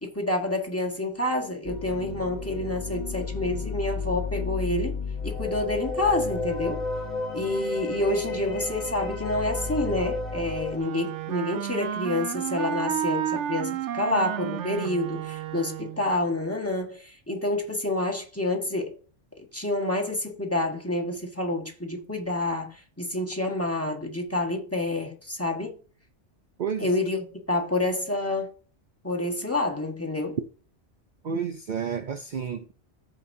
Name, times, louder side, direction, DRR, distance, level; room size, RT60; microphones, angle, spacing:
voice 1, 0.0-6.8 7.3-18.9 19.5-25.7 26.8-28.5 29.0-30.4, left 2 dB, 10° left, 1.4 m, -28 dB
sound 1, 1.6-10.8, left 3 dB, 35° left, 1.8 m, -32 dB
Wind instrument woodwind instrument, 10.8-16.1, right 10 dB, 75° right, 0.9 m, -31 dB
voice 2, 26.6-27.0 31.2-32.7, right 7 dB, 50° right, 0.6 m, -31 dB
14.5 x 5.1 x 2.7 m
omnidirectional pair, 1.3 m